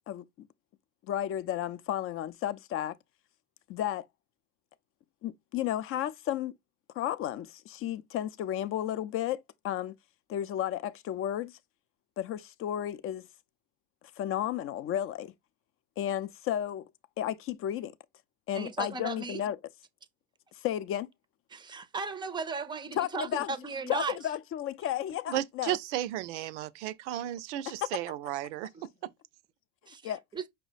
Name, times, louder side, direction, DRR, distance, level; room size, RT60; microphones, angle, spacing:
voice 1, 0.1-0.5 1.1-3.0 3.7-4.1 5.2-6.6 6.9-10.0 10.3-11.5 12.2-13.3 14.2-15.3 16.0-16.9 17.2-17.9 18.5-19.6 20.6-21.1 23.0-23.5 23.9-25.8 30.0-30.2, left 11 dB, 40° left, 0.5 m, -33 dB
voice 2, 18.5-19.4 21.5-24.2 28.7-28.8 29.9-30.4, right 4 dB, 15° right, 0.5 m, -36 dB
voice 3, 25.3-29.1, right 13 dB, 80° right, 0.5 m, -34 dB
5.3 x 2.1 x 4.0 m
hypercardioid pair, 95°, 35 cm